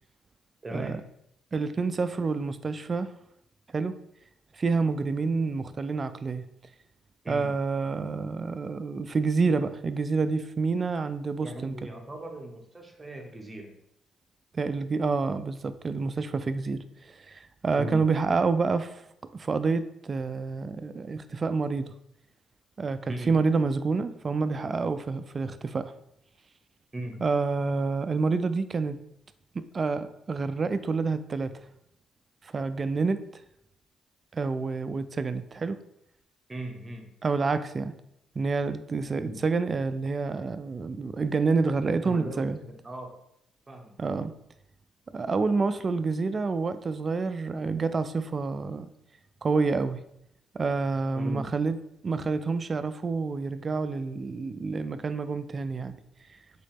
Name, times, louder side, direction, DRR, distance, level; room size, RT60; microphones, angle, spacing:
voice 1, 0.6-1.0 7.2-7.5 11.4-13.7 17.8-18.0 23.1-23.3 26.9-27.2 36.5-37.1 39.1-39.4 42.0-43.1 43.7-43.9 51.2-51.5, right 1 dB, 20° right, 2 dB, 0.9 m, -38 dB
voice 2, 1.5-3.1 3.7-3.9 4.6-6.4 7.3-11.9 14.5-19.0 19.3-21.9 22.8-25.9 27.2-29.0 29.5-31.5 32.4-33.2 34.3-35.8 37.2-37.9 38.4-42.6 44.0-44.3 45.1-48.9 49.4-50.0 50.5-51.8 52.0-56.0, right 4 dB, 35° right, 12 dB, 0.3 m, -28 dB
3.9 x 3.7 x 3.6 m, 0.76 s
cardioid pair, 90°, 0 cm